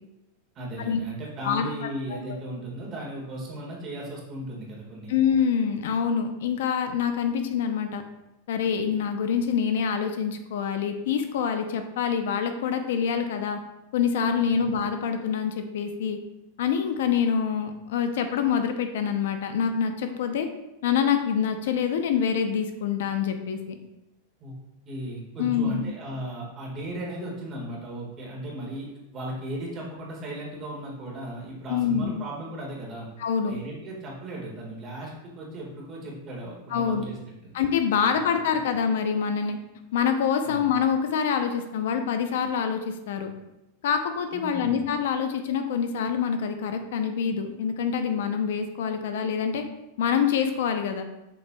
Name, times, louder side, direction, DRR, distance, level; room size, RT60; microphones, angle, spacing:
voice 1, 0.5-5.1 14.5-14.7 24.4-24.5 24.8-33.1 33.4-37.2 37.4-37.5 38.1-38.2 40.4-40.6 44.3-44.8, right 1 dB, 25° right, -3 dB, 1.8 m, -36 dB
voice 2, 5.1-8.0 8.5-13.6 13.9-16.2 16.6-20.5 20.8-23.8 25.4-25.9 31.7-32.2 33.2-33.6 36.7-37.1 37.5-39.6 39.9-43.3 43.8-49.6 50.0-51.0, left 7 dB, 75° left, 7 dB, 0.6 m, -26 dB
7.2 x 5.8 x 2.3 m, 0.91 s
supercardioid pair, 160°, 0 cm